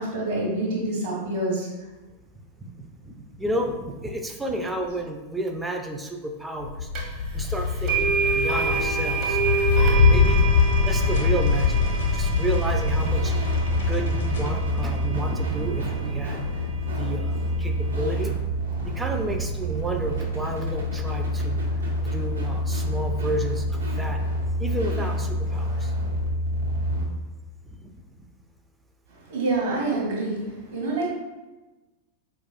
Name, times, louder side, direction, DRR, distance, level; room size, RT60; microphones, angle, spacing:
voice 1, 0.0-1.7 29.3-31.1, right 2 dB, 55° right, -4 dB, 1.2 m, -27 dB
voice 2, 2.4-6.9 7.3-9.4 9.8-10.4 10.9-13.3 13.9-16.4 16.9-18.3 19.0-21.6 22.1-24.2 24.6-25.9 27.8-27.9, right 1 dB, 10° right, 3 dB, 0.4 m, -31 dB
sound 1, 6.6-17.2, left 4 dB, 60° left, 0.6 m, -24 dB
sound 2, 7.0-7.1 7.9-15.9, right 5 dB, 35° right, 0.7 m, -29 dB
sound 3, 12.5-27.0, equal, 75° right, 0.7 m, -27 dB
4.5 x 2.3 x 2.5 m, 1.1 s
figure-of-eight pair, 90°, 0 cm